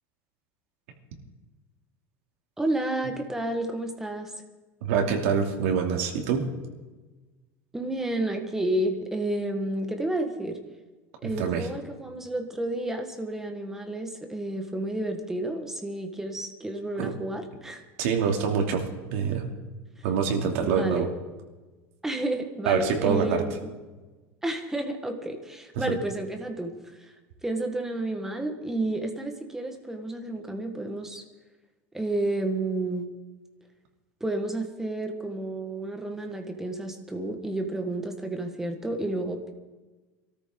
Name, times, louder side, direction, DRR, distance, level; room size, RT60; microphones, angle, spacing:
voice 1, 2.6-4.3 7.7-10.6 11.2-17.8 20.6-21.1 22.0-23.7 24.4-26.7 27.0-27.1 27.4-31.2 31.9-33.1 34.2-39.5, right 1 dB, 5° right, 5 dB, 1.4 m, -31 dB
voice 2, 4.8-6.5 11.2-11.7 17.0-17.1 18.0-19.5 20.0-21.1 22.7-23.4, right 6 dB, 75° right, 2 dB, 2.7 m, -25 dB
23.5 x 13.5 x 3.8 m, 1.2 s
cardioid pair, 160°, 7 cm